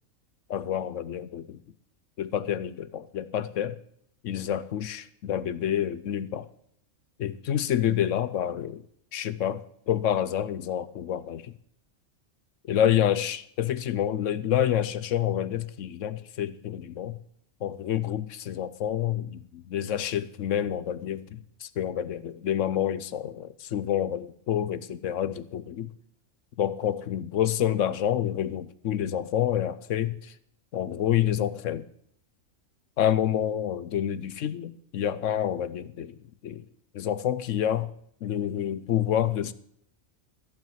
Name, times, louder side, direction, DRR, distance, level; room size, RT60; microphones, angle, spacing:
voice 1, 0.5-1.6 2.2-3.8 4.2-6.5 7.2-8.9 9.1-11.5 12.7-17.2 17.6-25.9 26.6-30.3 30.7-31.9 33.0-36.6 36.9-37.9 38.2-39.5, left 10 dB, 70° left, 1.0 m, -28 dB
14.5 x 5.7 x 9.0 m
omnidirectional pair, 1.4 m